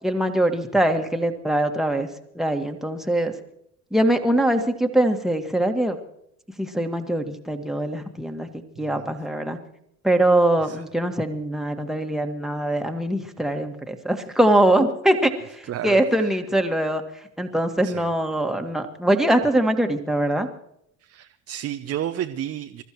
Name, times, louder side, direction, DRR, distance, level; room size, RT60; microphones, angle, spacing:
voice 1, 0.0-2.1 2.4-3.3 3.9-6.0 6.6-9.6 10.0-20.5, right 1 dB, ahead, 4 dB, 1.9 m, -22 dB
voice 2, 15.7-16.4 17.8-18.1 21.0-22.8, right 11 dB, 35° right, 6 dB, 0.9 m, -32 dB
27.5 x 14.5 x 3.2 m, 0.74 s
figure-of-eight pair, 65°, 41 cm